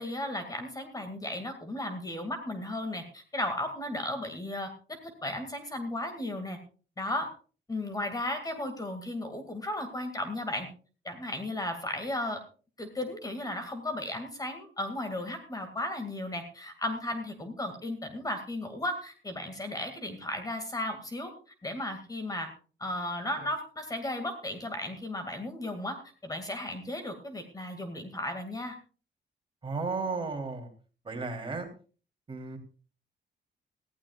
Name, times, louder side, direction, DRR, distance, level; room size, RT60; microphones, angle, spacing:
voice 1, 0.0-6.6 7.0-7.3 7.7-10.7 11.0-12.4 12.8-21.3 21.6-22.5 22.8-28.8, left 1 dB, 20° left, 7 dB, 2.2 m, -35 dB
voice 2, 29.6-30.7 31.0-31.7 32.3-32.6, right 4 dB, 30° right, 3 dB, 3.3 m, -34 dB
20.0 x 15.0 x 2.4 m, 0.38 s
cardioid pair, 135°, 18 cm